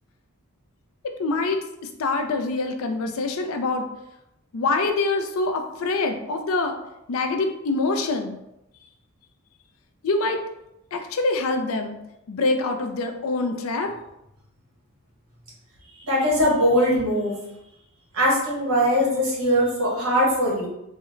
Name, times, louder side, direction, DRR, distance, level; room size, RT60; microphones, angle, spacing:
voice 1, 1.0-3.9 4.5-6.7 7.1-8.4 10.0-10.4 10.9-12.0 12.3-13.9, left 3 dB, 70° left, 5 dB, 0.4 m, -25 dB
voice 2, 16.0-17.4 18.1-20.7, equal, 70° right, -4 dB, 1.3 m, -21 dB
3.6 x 2.1 x 3.0 m, 0.86 s
head